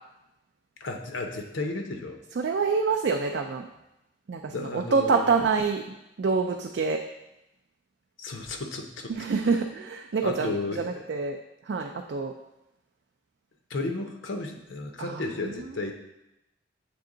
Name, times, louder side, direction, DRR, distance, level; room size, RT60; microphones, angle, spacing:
voice 1, 0.8-2.2 4.5-5.4 8.2-9.3 10.2-11.0 13.7-15.9, left 3 dB, 80° left, 4 dB, 0.7 m, -33 dB
voice 2, 2.4-3.7 4.3-5.8 6.2-7.0 9.1-11.4 11.7-12.3 15.0-15.5, right 4 dB, 60° right, 2 dB, 0.4 m, -26 dB
7.6 x 3.6 x 3.8 m, 0.92 s
head